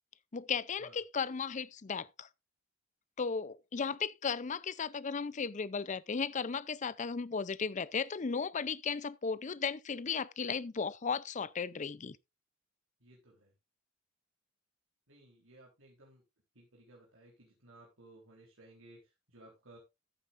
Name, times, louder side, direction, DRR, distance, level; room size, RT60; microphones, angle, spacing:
voice 1, 0.3-2.3 3.2-12.2, left 5 dB, 35° left, 0.5 m, -35 dB
voice 2, 13.0-13.5 15.1-16.2 16.6-19.8, right 1 dB, 65° right, 3.6 m, -58 dB
14.0 x 8.5 x 2.5 m
head